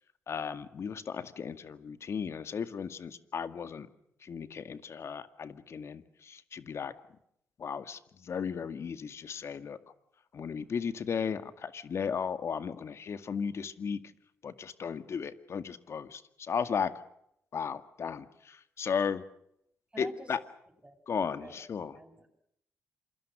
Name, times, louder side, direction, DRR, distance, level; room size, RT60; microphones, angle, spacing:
voice 1, 0.3-3.9 4.2-6.9 7.6-9.8 10.3-14.0 14.4-16.9 17.5-19.2 20.0-20.4 21.1-22.0, left 6 dB, 55° left, 11 dB, 2.1 m, -35 dB
voice 2, 19.9-20.3 20.8-21.0 21.4-21.5 21.9-22.3, right 2 dB, 20° right, 5 dB, 7.9 m, -47 dB
27.5 x 22.5 x 6.3 m, 0.74 s
cardioid pair, 65°, 5 cm